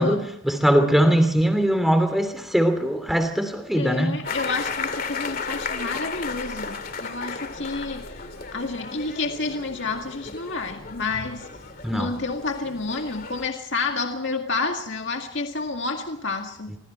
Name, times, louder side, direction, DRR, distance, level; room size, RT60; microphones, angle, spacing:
voice 1, 0.0-4.2 11.8-12.1 16.7-16.8, equal, ahead, 8 dB, 2.8 m, -21 dB
voice 2, 3.7-11.5 11.9-16.8, left 3 dB, 65° left, 3 dB, 2.0 m, -29 dB
sound 1, 4.2-13.5, left 4 dB, 45° left, 2.5 m, -34 dB
25.0 x 24.5 x 4.4 m, 0.73 s
head